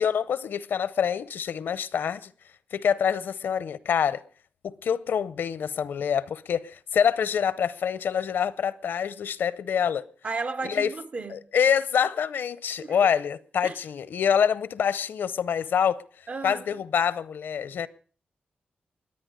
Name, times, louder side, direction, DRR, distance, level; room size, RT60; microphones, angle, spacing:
voice 1, 0.0-2.3 2.7-4.2 4.6-10.0 10.6-10.9 11.3-16.0 16.4-17.9, left 7 dB, 85° left, 0.6 m, -26 dB
voice 2, 10.2-11.4 12.8-13.1 13.6-13.8 16.3-16.6, right 4 dB, 45° right, 0.7 m, -34 dB
22.5 x 8.9 x 5.1 m
cardioid pair, 90°, 3 cm